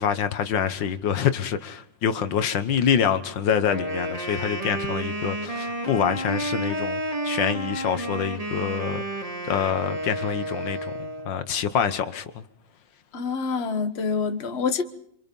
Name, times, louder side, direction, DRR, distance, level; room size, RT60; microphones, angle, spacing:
voice 1, 0.0-9.0 9.5-12.4, left 8 dB, 80° left, 1.9 m, -26 dB
Wind instrument woodwind instrument, 3.6-11.4, right 1 dB, 20° right, 2.4 m, -31 dB
voice 2, 13.1-14.8, left 5 dB, 35° left, 1.5 m, -26 dB
27.5 x 25.0 x 5.4 m
omnidirectional pair, 2.0 m